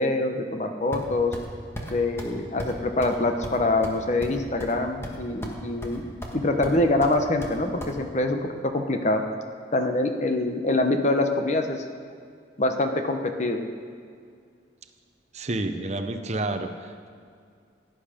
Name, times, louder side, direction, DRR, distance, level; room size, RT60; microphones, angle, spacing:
voice 1, 0.0-1.3 1.9-6.1 6.3-9.2 9.7-11.8 12.6-13.7, left 2 dB, 40° left, 6 dB, 0.9 m, -25 dB
sound 1, 0.9-1.5 1.8-1.9 2.2-2.3 2.6-2.8 3.0-3.2 3.4-4.8 5.0-5.6 5.8-6.4 6.6-7.9, equal, 15° left, 1.5 m, -36 dB
voice 2, 15.3-17.1, right 2 dB, 40° right, 7 dB, 0.7 m, -30 dB
17.0 x 10.5 x 5.1 m, 2.2 s
head